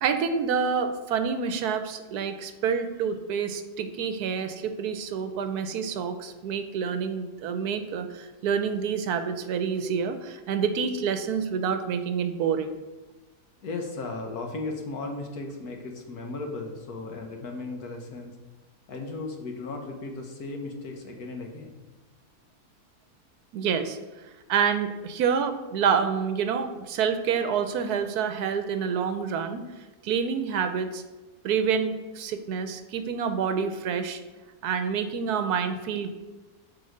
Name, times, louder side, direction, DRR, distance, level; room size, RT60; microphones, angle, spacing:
voice 1, 0.0-12.8 23.5-24.0 24.5-29.6 30.0-31.0 31.4-34.2 34.6-36.1, right 6 dB, 75° right, 9 dB, 1.2 m, -27 dB
voice 2, 13.6-18.3 18.9-21.8, left 3 dB, 70° left, 3 dB, 1.7 m, -36 dB
7.9 x 4.6 x 6.5 m, 1.2 s
omnidirectional pair, 1.7 m